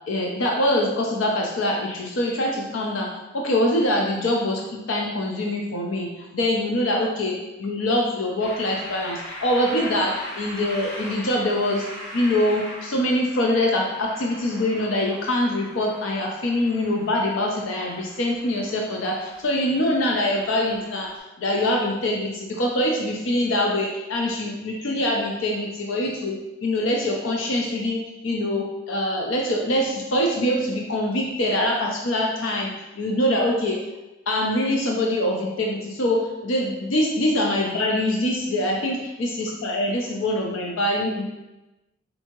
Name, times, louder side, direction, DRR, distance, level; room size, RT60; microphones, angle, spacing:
voice 1, 0.1-11.8 12.1-33.8 34.3-41.3, left 1 dB, 90° left, -1 dB, 0.5 m, -24 dB
sound 1, 8.4-21.2, equal, 65° left, 1.4 m, -41 dB
4.4 x 2.7 x 2.9 m, 1.0 s
head